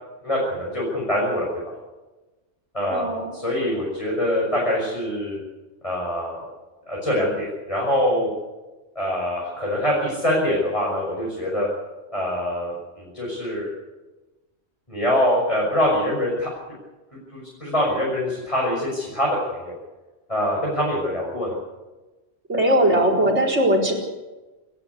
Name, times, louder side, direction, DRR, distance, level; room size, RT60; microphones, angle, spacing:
voice 1, 0.2-1.7 2.7-5.4 5.8-6.4 6.9-8.3 8.9-11.7 12.1-13.7 14.9-16.5 17.3-19.8 20.3-21.6, left 1 dB, 25° left, -5 dB, 6.4 m, -24 dB
voice 2, 2.9-3.4 22.5-23.9, right 1 dB, 65° right, -1 dB, 4.9 m, -19 dB
28.5 x 12.0 x 8.4 m, 1.1 s
omnidirectional pair, 1.3 m